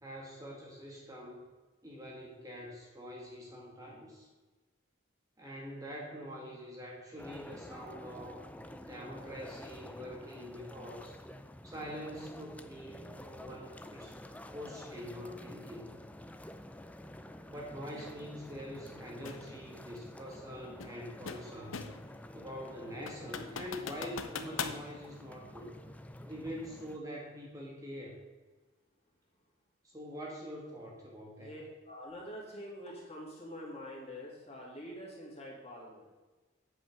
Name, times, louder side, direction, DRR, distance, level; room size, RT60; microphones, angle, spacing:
voice 1, 0.0-1.5 1.8-4.3 5.4-8.4 8.8-11.2 11.6-14.2 14.5-16.0 17.5-21.8 22.3-25.7 26.2-28.2 29.8-31.5, equal, 15° right, -2 dB, 1.5 m, -45 dB
sound 1, 7.2-27.0, left 1 dB, 5° left, 0.4 m, -49 dB
sound 2, 19.2-19.5 20.8-22.1 22.5-22.6 23.1-24.8, left 6 dB, 80° left, 0.8 m, -40 dB
voice 2, 31.4-36.2, equal, 30° left, -4 dB, 2.8 m, -46 dB
8.7 x 5.6 x 6.9 m, 1.3 s
head